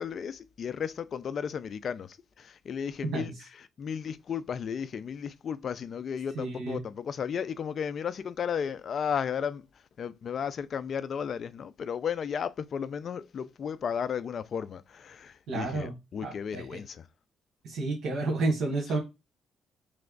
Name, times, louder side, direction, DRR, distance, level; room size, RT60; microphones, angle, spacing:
voice 1, 0.0-9.7 10.0-17.1, left 7 dB, 55° left, 0.4 m, -34 dB
voice 2, 6.3-6.8 15.5-15.9 16.2-16.8 17.6-19.0, right 3 dB, 75° right, 1.5 m, -30 dB
3.4 x 3.2 x 3.8 m
cardioid pair, 90°, 0 cm